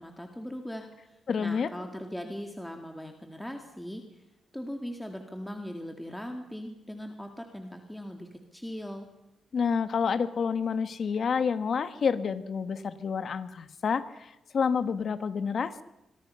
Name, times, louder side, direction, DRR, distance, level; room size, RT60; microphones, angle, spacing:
voice 1, 0.0-4.2 4.5-9.1, equal, 5° left, 4 dB, 2.1 m, -40 dB
voice 2, 1.3-1.7 9.5-15.8, left 6 dB, 55° left, 11 dB, 1.4 m, -29 dB
26.0 x 23.5 x 5.6 m, 0.92 s
cardioid pair, 120°, 0 cm